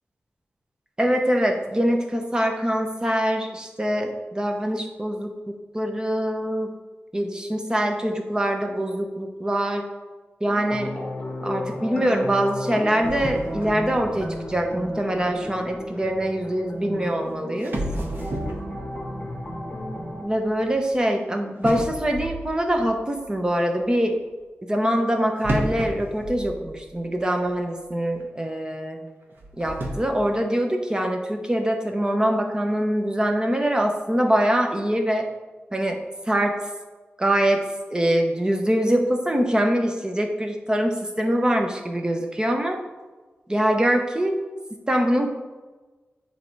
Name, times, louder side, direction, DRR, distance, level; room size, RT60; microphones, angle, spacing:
voice 1, 1.0-6.7 7.1-9.8 10.4-10.9 11.4-17.8 20.2-24.2 24.6-29.1 29.6-35.3 35.7-36.0 36.3-36.6 37.2-42.8 43.5-44.4 44.9-45.3, equal, 20° right, 4 dB, 0.8 m, -24 dB
sound 1, 10.4-20.2, left 1 dB, 20° left, 1.6 m, -33 dB
sound 2, 13.0-16.2 17.1-17.2 17.6-21.0 21.6-23.5 25.4-27.2 27.5-27.6 28.2-28.3 29.3-30.0, right 1 dB, 55° right, 1.2 m, -33 dB
9.6 x 3.3 x 4.6 m, 1.3 s
wide cardioid pair, 130°, 4 cm